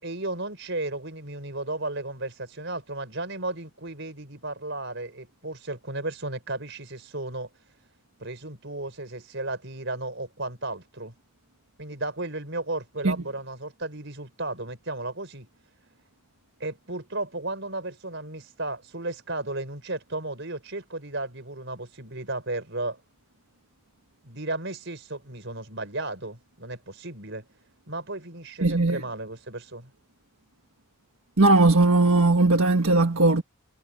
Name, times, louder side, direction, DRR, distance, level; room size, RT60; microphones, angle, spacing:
voice 1, 0.0-7.5 8.2-11.1 11.8-15.5 16.6-23.0 24.2-27.4 27.9-29.9, right 2 dB, 55° right, 5.8 m, -34 dB
voice 2, 28.6-29.0 31.4-33.4, right 2 dB, 75° right, 1.6 m, -19 dB
head